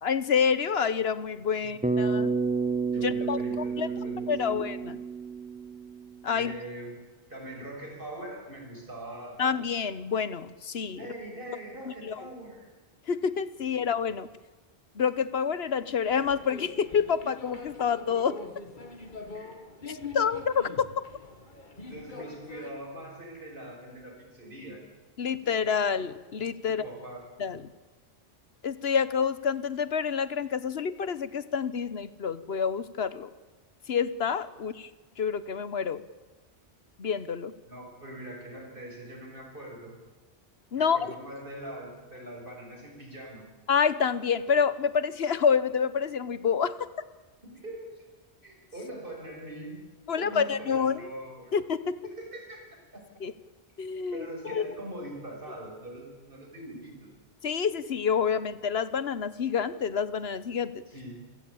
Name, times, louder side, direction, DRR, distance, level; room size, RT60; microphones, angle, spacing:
voice 1, 0.0-2.3 3.0-3.9 4.3-5.0 6.2-6.5 9.4-11.0 11.9-12.2 13.1-14.3 14.9-18.4 19.9-20.7 25.2-26.8 27.4-27.6 28.6-33.3 33.9-34.9 35.2-36.0 37.0-37.5 40.7-41.1 43.7-46.7 50.1-51.1 51.5-52.0 53.2-53.3 53.8-54.7 57.4-60.8, left 6 dB, 70° left, 15 dB, 1.3 m, -28 dB
voice 2, 1.6-2.0 2.9-4.7 6.3-7.0 7.3-9.4 11.0-12.6 19.3-19.5 21.9-24.8 26.6-27.2 37.6-40.0 40.7-43.5 47.4-48.0 48.4-49.8 50.2-51.5 52.0-53.0 54.1-57.1 60.9-61.2, right 1 dB, 55° right, 1 dB, 6.6 m, -42 dB
Bass guitar, 1.8-6.2, right 4 dB, 5° right, 1.1 m, -30 dB
sound 1, 16.1-22.7, left 3 dB, 45° left, 2.3 m, -44 dB
27.0 x 16.5 x 8.7 m, 1.3 s
omnidirectional pair, 1.1 m